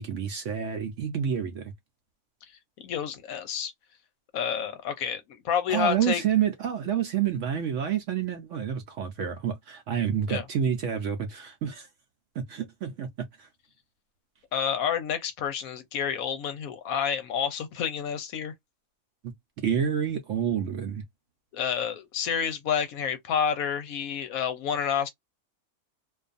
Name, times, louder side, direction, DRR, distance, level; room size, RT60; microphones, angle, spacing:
voice 1, 0.0-1.7 5.7-11.9 12.4-13.1 13.4-13.5 19.2-19.3 19.6-21.0, right 8 dB, 65° right, 0.8 m, -28 dB
voice 2, 2.8-3.7 4.3-6.2 10.3-10.5 14.5-18.5 21.5-25.1, left 8 dB, 75° left, 1.0 m, -29 dB
2.6 x 2.3 x 2.5 m
omnidirectional pair, 1.6 m